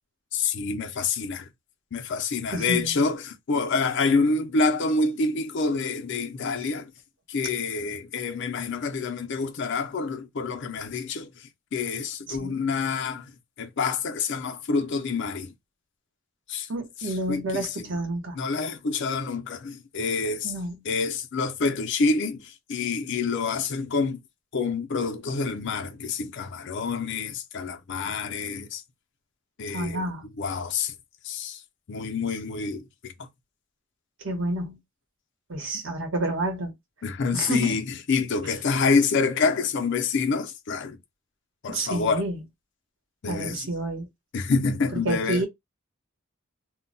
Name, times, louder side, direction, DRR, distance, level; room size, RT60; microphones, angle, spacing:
voice 1, 0.3-1.5 1.9-6.9 7.3-13.3 13.6-15.5 16.5-16.7 17.0-17.9 18.3-20.5 20.8-24.2 24.5-28.8 29.6-30.0 30.4-30.9 31.2-31.6 31.9-33.3 37.0-41.0 41.6-42.2 43.2-43.7 44.3-45.5, left 4 dB, 60° left, 0.5 m, -27 dB
voice 2, 2.5-3.0 12.3-12.6 16.7-18.4 20.4-20.8 29.7-30.3 34.2-34.8 35.5-36.7 37.3-37.7 41.7-42.4 43.3-44.1 45.0-45.5, right 2 dB, 65° right, 1.0 m, -29 dB
2.2 x 2.1 x 3.8 m
head